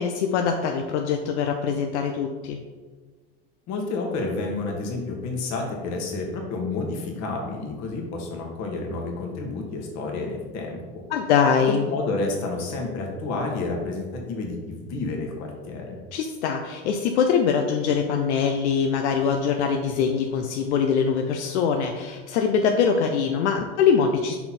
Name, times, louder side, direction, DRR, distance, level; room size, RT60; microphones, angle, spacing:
voice 1, 0.0-2.6 11.1-11.8 16.1-24.3, left 6 dB, 85° left, 4 dB, 0.6 m, -23 dB
voice 2, 3.7-11.0 11.6-16.0, left 3 dB, 55° left, 1 dB, 1.6 m, -30 dB
5.6 x 4.3 x 4.2 m, 1.4 s
supercardioid pair, 115°, 33 cm